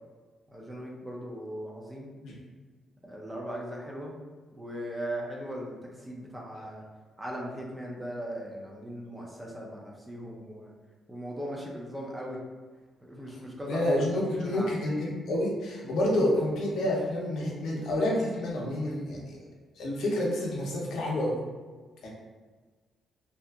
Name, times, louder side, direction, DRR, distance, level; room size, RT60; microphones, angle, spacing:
voice 1, 0.5-2.1 3.0-4.1 4.6-6.8 7.2-10.7 11.1-12.4 13.1-13.9 14.3-14.8 15.8-16.0, equal, 10° right, -2 dB, 0.4 m, -38 dB
voice 2, 13.7-19.4 19.8-21.4 22.0-22.1, left 1 dB, 70° left, -3 dB, 0.6 m, -28 dB
2.7 x 2.4 x 2.3 m, 1.4 s
cardioid pair, 175°, 0 cm